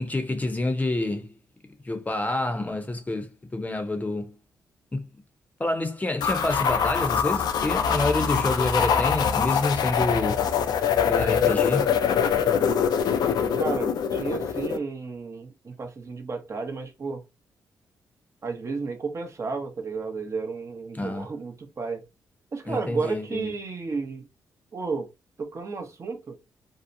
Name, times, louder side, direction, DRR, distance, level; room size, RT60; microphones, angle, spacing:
voice 1, 0.0-1.3 1.8-4.3 4.9-5.0 5.6-10.5 11.1-11.9 21.0-21.3 22.7-23.4, left 2 dB, 20° left, 0.7 m, -28 dB
sound 1, 6.2-14.8, left 7 dB, 70° left, 0.4 m, -24 dB
voice 2, 13.5-17.2 18.4-22.0 22.5-24.3 24.7-25.1 25.4-26.4, right 4 dB, 40° right, 0.7 m, -32 dB
2.7 x 2.1 x 2.6 m
supercardioid pair, 60°, 7 cm